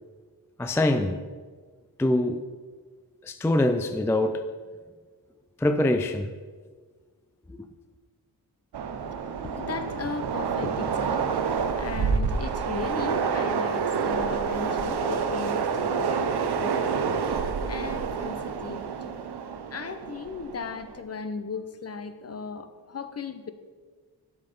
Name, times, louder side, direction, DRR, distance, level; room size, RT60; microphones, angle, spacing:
voice 1, 0.6-1.2 2.0-2.4 3.2-4.4 5.6-6.3, left 1 dB, 5° left, 0.3 m, -24 dB
Train, 8.7-21.0, right 6 dB, 75° right, 0.8 m, -28 dB
voice 2, 9.0-19.3 19.7-23.5, left 5 dB, 40° left, 0.6 m, -37 dB
12.0 x 5.5 x 5.3 m
wide cardioid pair, 160°, 39 cm